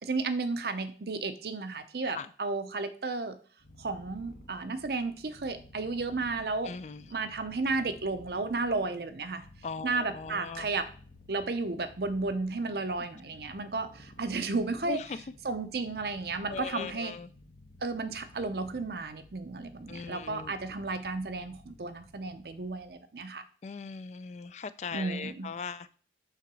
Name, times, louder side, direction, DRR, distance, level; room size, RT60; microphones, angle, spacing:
voice 1, 0.0-3.4 3.8-6.7 7.1-9.5 9.8-10.8 11.3-15.0 15.4-17.1 17.8-23.4 24.9-25.5, right 3 dB, 60° right, 0.7 m, -33 dB
Purr, 3.6-22.9, left 1 dB, 70° left, 1.1 m, -54 dB
voice 2, 6.6-7.1 9.6-10.7 14.9-15.2 16.5-17.3 19.9-20.5 23.6-25.9, left 5 dB, 40° left, 0.3 m, -39 dB
5.7 x 3.9 x 6.0 m
head